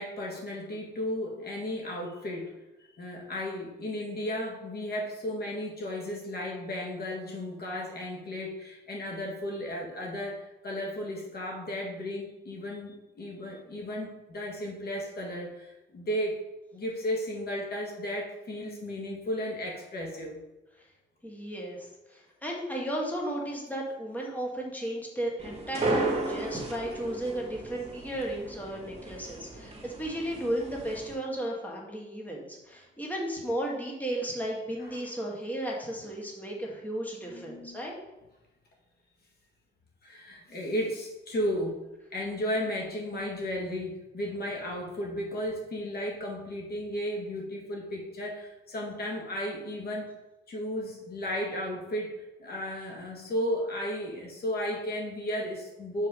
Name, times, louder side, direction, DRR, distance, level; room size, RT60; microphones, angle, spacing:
voice 1, 0.0-2.5 3.0-16.4 16.7-20.4 34.8-35.0 37.2-37.9 40.0-41.8 42.1-50.1 50.5-56.1, equal, 55° left, -1 dB, 1.7 m, -34 dB
voice 2, 21.2-38.0, right 1 dB, 10° left, -2 dB, 1.8 m, -34 dB
sound 1, 25.4-31.1, right 2 dB, 30° right, 1.9 m, -34 dB
5.6 x 4.5 x 5.3 m, 1.0 s
cardioid pair, 90°, 20 cm